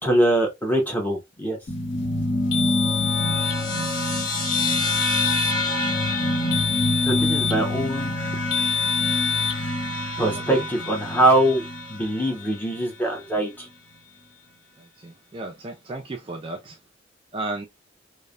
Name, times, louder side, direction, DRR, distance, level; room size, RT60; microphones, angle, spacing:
voice 1, 0.0-1.6 7.0-8.1 10.2-11.6 11.9-13.7, right 1 dB, 10° left, 0.7 m, -22 dB
sound 1, 1.7-12.4, left 1 dB, 45° left, 1.1 m, -26 dB
sound 2, 2.5-3.6 4.5-5.6 6.5-7.7 8.5-9.6, left 7 dB, 65° left, 0.6 m, -26 dB
voice 2, 15.0-16.8 17.3-17.7, right 2 dB, 30° right, 0.4 m, -33 dB
3.1 x 2.1 x 2.4 m
head